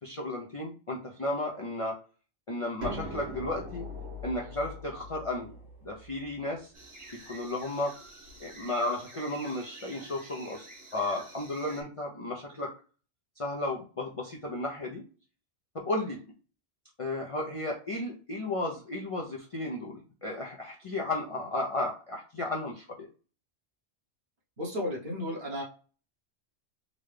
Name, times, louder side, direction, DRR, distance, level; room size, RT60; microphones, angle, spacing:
voice 1, 0.0-2.0 2.5-3.9 4.2-5.6 5.8-6.7 7.3-7.9 8.4-12.7 13.4-15.0 15.7-16.2 17.0-23.1, left 2 dB, 40° left, -2 dB, 0.6 m, -34 dB
sound 1, 2.8-8.4, left 1 dB, 80° right, 1.7 m, -42 dB
sound 2, 6.7-11.8, right 2 dB, 25° right, 1.2 m, -49 dB
voice 2, 24.6-25.6, left 1 dB, 50° right, -3 dB, 1.4 m, -33 dB
3.8 x 2.2 x 3.3 m, 0.36 s
omnidirectional pair, 1.1 m